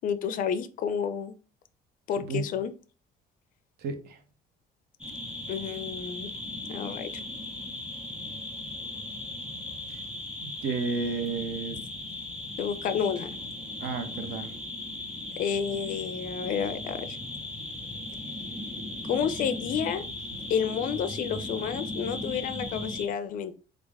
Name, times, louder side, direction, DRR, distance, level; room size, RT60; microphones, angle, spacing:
voice 1, 0.0-1.3 2.1-2.7 5.5-6.3 6.7-7.1 11.1-11.6 12.6-13.4 15.4-17.2 19.0-20.0 20.5-23.6, left 7 dB, 55° left, 0.4 m, -30 dB
sound 1, 5.0-23.1, left 2 dB, 5° right, 0.9 m, -37 dB
voice 2, 10.4-11.8 13.8-14.5, right 4 dB, 70° right, 0.7 m, -31 dB
3.4 x 2.4 x 3.3 m
cardioid pair, 110°, 17 cm